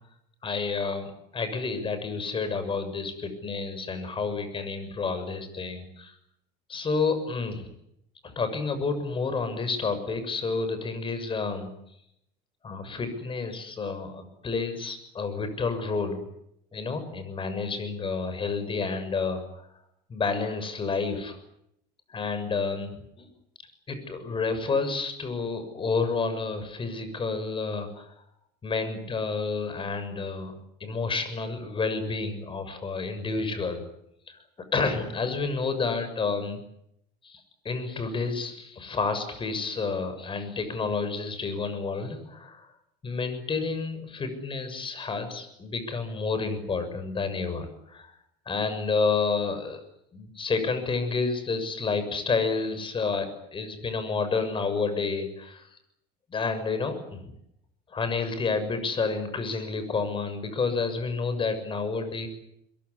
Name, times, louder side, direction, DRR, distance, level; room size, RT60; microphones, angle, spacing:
voice 1, 0.4-6.1 6.7-7.7 8.2-11.7 12.6-16.3 16.7-19.6 20.1-21.4 22.1-23.3 23.9-28.1 28.6-30.5 30.8-33.8 34.3-34.4 34.7-36.6 37.2-42.7 43.0-48.1 48.5-49.8 50.1-55.7 56.3-57.2 57.9-62.3, left 4 dB, 30° left, 10 dB, 6.8 m, -30 dB
23.0 x 23.0 x 9.9 m, 0.78 s
cardioid pair, 125°, 18 cm